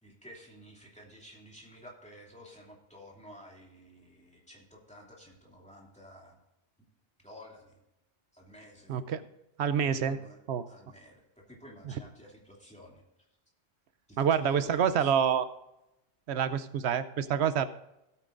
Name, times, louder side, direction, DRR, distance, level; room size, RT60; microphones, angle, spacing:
voice 1, 0.0-6.4 7.2-7.7 8.3-9.0 9.7-10.4 10.7-13.0 14.1-15.1, equal, 5° left, -3 dB, 2.7 m, -51 dB
voice 2, 8.9-9.2 9.6-10.2 10.5-10.6 14.2-15.4 16.3-17.7, right 8 dB, 85° right, 12 dB, 0.9 m, -27 dB
16.5 x 9.0 x 2.5 m, 0.91 s
omnidirectional pair, 1.1 m